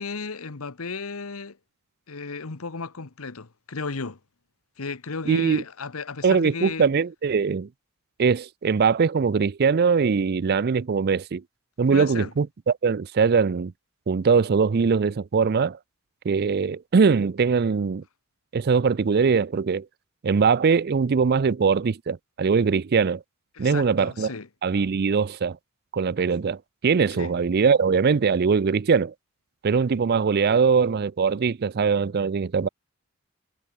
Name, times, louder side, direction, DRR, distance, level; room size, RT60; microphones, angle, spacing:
voice 1, 0.0-1.6 2.1-4.2 4.8-6.9 11.9-12.3 23.5-24.5 27.1-27.3, left 4 dB, 80° left, 1.2 m, -34 dB
voice 2, 5.3-5.6 6.2-7.7 8.2-11.4 11.8-13.7 14.1-15.8 16.2-18.0 18.5-19.9 20.2-23.2 23.6-24.3 24.6-25.6 25.9-29.1 29.6-32.7, right 5 dB, 45° right, 0.4 m, -21 dB
head